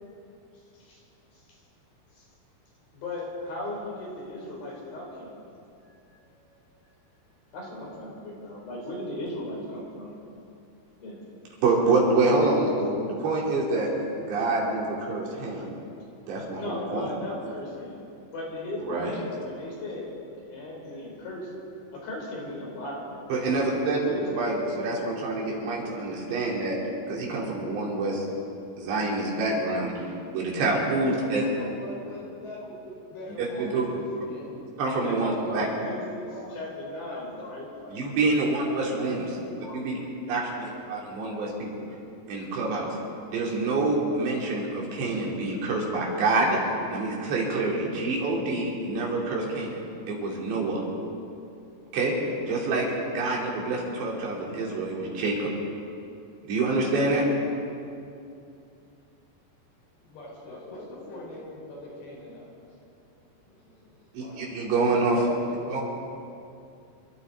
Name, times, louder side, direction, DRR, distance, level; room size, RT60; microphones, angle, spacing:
voice 1, 2.9-5.4 6.4-6.6 7.5-10.1 11.0-11.2 16.6-18.0 18.3-20.1 20.5-21.5 21.9-23.3 24.1-24.5 33.7-34.0 35.0-36.3 36.5-37.7 60.5-60.9, left 1 dB, 60° left, -3 dB, 5.3 m, -36 dB
voice 2, 11.6-13.9 14.2-15.6 16.3-17.1 18.8-19.2 23.3-24.0 24.3-26.8 27.1-28.3 28.8-30.1 30.3-31.4 33.4-33.8 34.8-35.7 37.9-39.3 39.7-40.0 40.3-41.7 42.3-42.9 43.3-46.6 46.9-49.8 50.1-50.8 51.9-52.1 52.5-55.5 56.5-57.2 64.1-65.3 65.7-65.8, right 3 dB, 80° right, -3 dB, 5.0 m, -26 dB
voice 3, 30.9-34.6 35.0-35.6 36.2-36.4 37.1-37.5 38.6-39.8 40.2-40.5 60.0-62.8 63.5-63.9 64.2-64.7 65.5-65.8, left 1 dB, 80° left, -5 dB, 6.8 m, -43 dB
27.0 x 13.0 x 4.0 m, 2.6 s
omnidirectional pair, 5.0 m